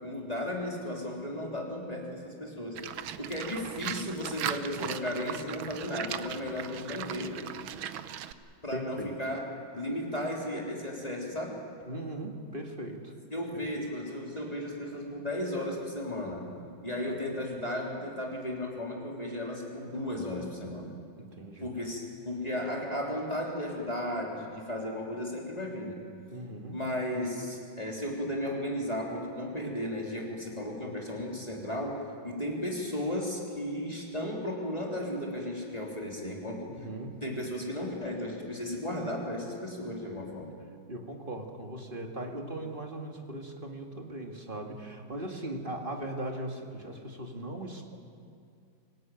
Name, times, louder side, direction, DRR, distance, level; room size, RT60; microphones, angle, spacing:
voice 1, 0.0-7.4 8.6-9.5 9.7-11.6 13.3-16.6 16.8-20.9 21.6-26.0 26.7-36.7 37.2-40.5, left 1 dB, 20° left, -2 dB, 3.4 m, -35 dB
Livestock farm animals working animals, 2.7-8.3, right 10 dB, 85° right, 1.6 m, -38 dB
voice 2, 8.7-9.1 11.9-13.1 13.5-13.8 21.2-21.7 26.3-26.8 36.7-37.2 40.9-48.0, right 1 dB, 25° right, 2 dB, 2.1 m, -39 dB
25.5 x 17.5 x 9.1 m, 2.3 s
omnidirectional pair, 2.2 m